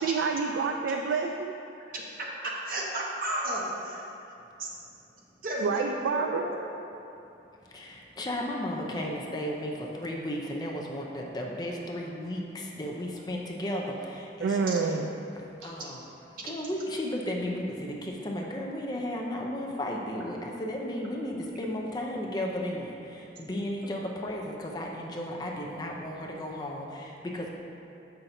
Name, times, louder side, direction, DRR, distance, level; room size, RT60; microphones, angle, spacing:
voice 1, 0.0-1.5 5.6-6.5 14.4-15.1 15.6-15.7, right 4 dB, 85° right, 3 dB, 0.3 m, -28 dB
voice 2, 1.9-4.0 4.6-4.7 5.4-6.6 14.7-14.8, right 1 dB, 50° right, -3 dB, 0.9 m, -33 dB
voice 3, 7.7-15.0 15.6-16.0 16.4-27.5, left 1 dB, 25° left, -1 dB, 0.5 m, -34 dB
7.0 x 5.7 x 2.6 m, 2.8 s
head